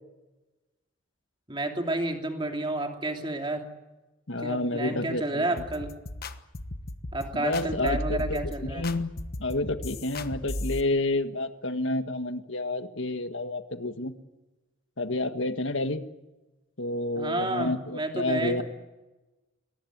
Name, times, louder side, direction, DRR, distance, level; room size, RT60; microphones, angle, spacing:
voice 1, 1.5-3.7 4.4-5.9 7.1-8.8 17.2-18.6, right 2 dB, 25° right, 3 dB, 2.9 m, -30 dB
voice 2, 4.3-5.4 7.3-9.1 9.4-14.1 15.0-16.0 16.8-18.6, left 2 dB, 65° left, 9 dB, 1.7 m, -29 dB
sound 1, 5.6-10.8, left 1 dB, 45° left, 1.3 m, -35 dB
23.0 x 19.0 x 9.4 m, 1.1 s
head